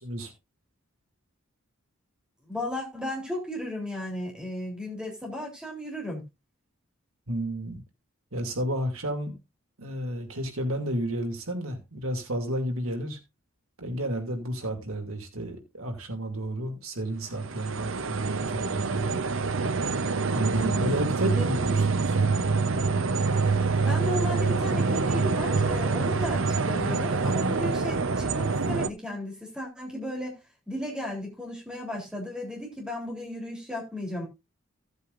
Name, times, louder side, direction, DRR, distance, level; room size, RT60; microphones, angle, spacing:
voice 1, 2.4-6.2 20.6-21.0 21.3-21.5 23.6-30.4 30.7-34.2, left 1 dB, 5° right, 3.4 m, -35 dB
voice 2, 7.3-7.8 8.3-9.3 9.8-13.2 13.8-19.2 20.3-22.2, right 1 dB, 80° right, 2.6 m, -31 dB
sound 1, 17.3-28.9, right 4 dB, 65° right, 0.7 m, -26 dB
16.0 x 8.2 x 2.5 m
head